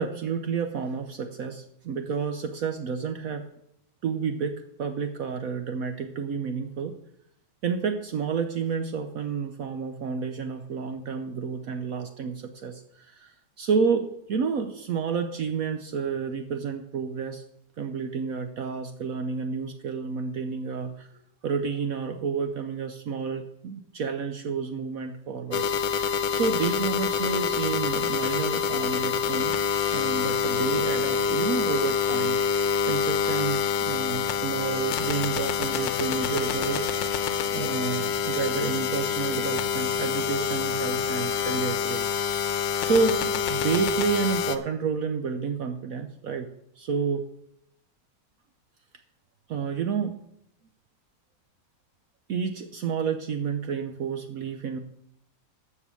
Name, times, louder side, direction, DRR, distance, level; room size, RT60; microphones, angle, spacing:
voice 1, 0.0-3.4 4.0-6.9 7.6-17.4 17.8-21.1 21.4-29.5 29.9-37.2 37.5-42.1 42.8-46.5 46.8-47.3 49.5-50.2 52.3-54.8, right 6 dB, 65° right, 7 dB, 1.0 m, -30 dB
sound 1, 25.5-44.6, left 6 dB, 85° left, 1.5 m, -26 dB
12.5 x 4.8 x 8.3 m, 0.78 s
omnidirectional pair, 2.0 m